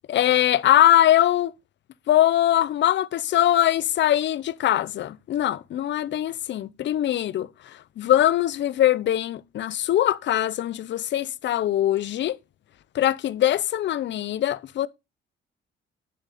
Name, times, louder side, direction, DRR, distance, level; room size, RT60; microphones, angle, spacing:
voice 1, 0.1-1.5 2.1-12.4 12.9-14.9, left 12 dB, 65° left, 0.7 m, -22 dB
10.0 x 6.3 x 4.2 m
cardioid pair, 90°, 20 cm